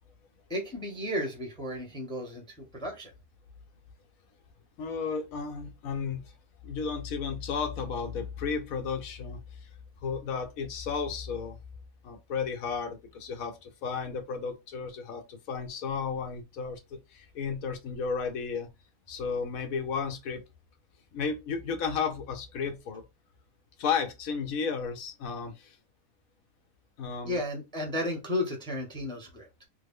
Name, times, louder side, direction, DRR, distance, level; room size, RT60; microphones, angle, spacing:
voice 1, 0.5-3.1 27.3-29.5, left 1 dB, 5° left, 0.6 m, -33 dB
voice 2, 4.8-6.3 6.6-9.7 10.0-11.6 12.0-18.7 19.1-20.4 21.1-23.0 23.8-25.8 27.0-27.4, left 5 dB, 70° left, 1.1 m, -33 dB
3.4 x 2.0 x 3.5 m
omnidirectional pair, 1.6 m